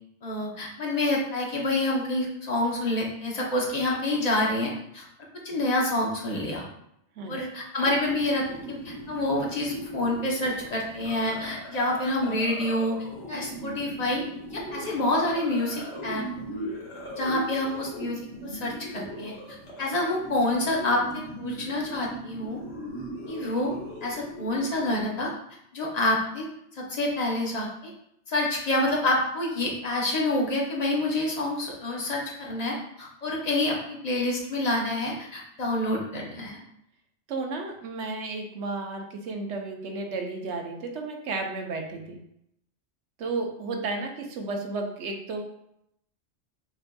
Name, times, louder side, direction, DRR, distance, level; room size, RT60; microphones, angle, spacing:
voice 1, 0.2-5.0 5.4-6.7 7.3-12.9 13.3-14.2 14.5-16.2 17.2-22.6 23.3-23.7 24.0-25.3 25.7-26.5 26.7-27.9 28.3-36.6, left 1 dB, 40° left, -2 dB, 0.8 m, -27 dB
sound 1, 7.8-25.0, right 1 dB, 85° left, 1.4 m, -39 dB
voice 2, 37.3-42.2 43.2-45.4, right 3 dB, 75° right, 2 dB, 1.0 m, -33 dB
6.0 x 2.5 x 2.2 m, 0.78 s
omnidirectional pair, 1.2 m